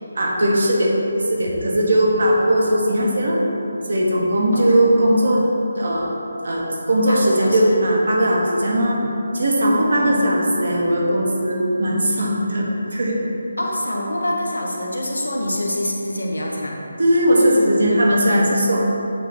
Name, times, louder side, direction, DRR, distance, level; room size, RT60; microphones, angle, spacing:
voice 1, 0.1-0.9 1.3-3.4 3.8-5.4 5.8-6.1 6.4-9.0 9.3-12.7 12.9-13.2 17.0-18.8, right 1 dB, 55° right, -2 dB, 1.1 m, -18 dB
voice 2, 4.5-4.8 7.1-7.9 8.7-9.0 9.6-10.3 13.6-16.8, left 1 dB, 70° left, -1 dB, 1.0 m, -26 dB
8.0 x 3.2 x 4.2 m, 2.9 s
figure-of-eight pair, 150°, 0 cm